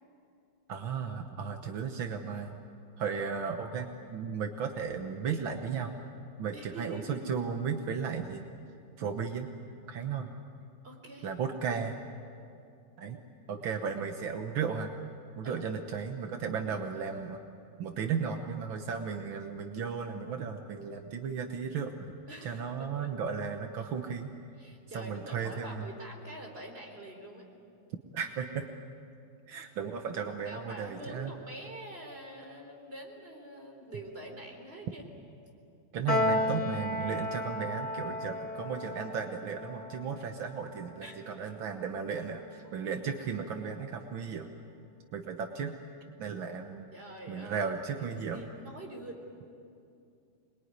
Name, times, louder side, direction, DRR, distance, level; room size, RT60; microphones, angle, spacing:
voice 1, 0.7-2.5 3.0-5.9 6.4-8.5 9.0-9.5 9.9-10.3 11.2-11.9 13.0-13.2 13.5-14.9 15.4-17.4 17.8-22.1 22.4-24.4 24.9-25.9 28.1-28.7 29.5-31.3 35.9-44.5 45.1-45.8 46.2-46.9 47.3-48.4, right 6 dB, 80° right, 5 dB, 1.9 m, -35 dB
voice 2, 6.5-7.3 10.8-11.3 11.7-11.8 15.4-15.7 22.3-22.6 23.0-23.1 24.6-27.4 30.4-35.0 41.0-41.2 46.9-47.7 48.0-49.2, right 1 dB, 30° right, 1 dB, 4.2 m, -45 dB
Piano, 36.1-42.6, left 1 dB, 40° left, 3.2 m, -35 dB
26.5 x 22.0 x 9.6 m, 2.6 s
omnidirectional pair, 2.2 m